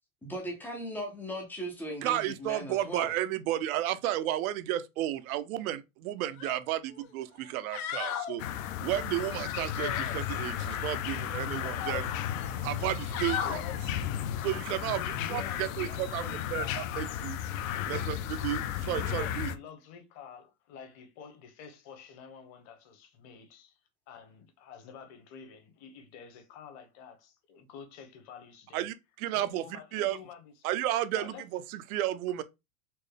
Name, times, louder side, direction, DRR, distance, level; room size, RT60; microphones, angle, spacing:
voice 1, 0.2-3.1, equal, 5° left, 0.3 m, -38 dB
voice 2, 2.0-8.4 8.8-12.1 12.6-13.6 14.4-15.0 15.3-17.4 17.9-19.5 28.7-29.6 29.9-30.2 30.6-32.4, right 13 dB, 75° right, 0.6 m, -32 dB
sound 1, 6.4-6.6 7.0-7.1 7.5-8.3 9.8-10.7 11.1-12.0 12.7-13.6 15.3-15.5, left 8 dB, 85° left, 1.2 m, -36 dB
sound 2, 8.4-19.6, left 10 dB, 65° left, 0.6 m, -34 dB
voice 3, 13.4-14.1 15.0-17.2 17.7-18.0 18.9-23.8 24.1-28.9 29.3-30.5 31.1-31.4 32.3-32.4, left 6 dB, 40° left, 1.0 m, -49 dB
4.3 x 2.0 x 3.2 m
supercardioid pair, 140°, 43 cm